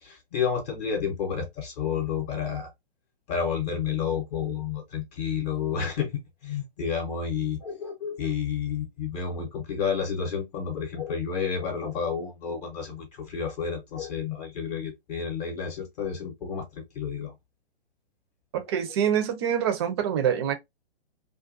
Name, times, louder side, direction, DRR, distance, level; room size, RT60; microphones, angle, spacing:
voice 1, 0.0-2.7 3.3-17.4, left 6 dB, 40° left, 0.7 m, -30 dB
voice 2, 18.5-20.5, right 9 dB, 25° right, 0.4 m, -25 dB
2.4 x 2.2 x 2.4 m
hypercardioid pair, 125°, 32 cm